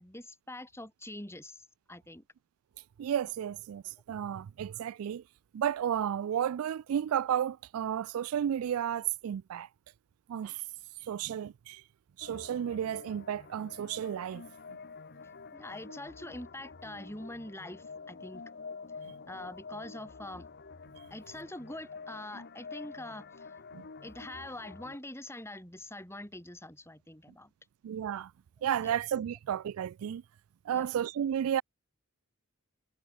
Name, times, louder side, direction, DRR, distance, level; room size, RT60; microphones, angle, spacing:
voice 1, 0.0-2.2 15.5-18.4 19.3-20.5 21.1-23.6 24.0-27.5 28.8-28.9 30.7-30.9, left 1 dB, 10° left, 5.5 m, -44 dB
voice 2, 3.0-5.2 5.5-9.7 10.3-10.6 11.0-11.8 12.2-14.4 23.7-23.9 27.8-28.3 28.6-30.2 30.7-31.6, right 9 dB, 65° right, 0.3 m, -32 dB
sound 1, 12.2-25.0, left 4 dB, 45° left, 1.0 m, -48 dB
head